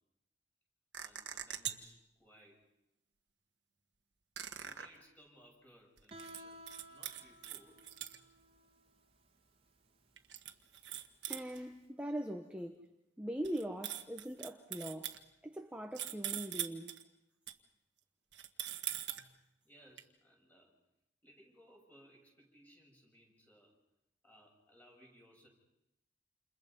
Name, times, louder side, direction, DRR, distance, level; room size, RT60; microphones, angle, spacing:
sound 1, 0.9-2.0 4.4-4.9 6.0-6.4 6.7-8.2 10.2-11.6 13.4-15.2 16.0-17.0 17.5-17.6 18.3-19.3 20.0-20.1, right 11 dB, 75° right, 1.6 m, -42 dB
voice 1, 1.0-2.6 4.5-7.8 11.9-12.0 19.6-20.7 21.2-23.8 24.2-25.5, equal, 10° left, 6.6 m, -63 dB
Guitar, 6.1-11.8, right 1 dB, 30° right, 2.1 m, -57 dB
voice 2, 11.3-12.9 13.2-15.2 15.4-17.0, equal, 5° right, 1.1 m, -41 dB
29.0 x 29.0 x 5.5 m
head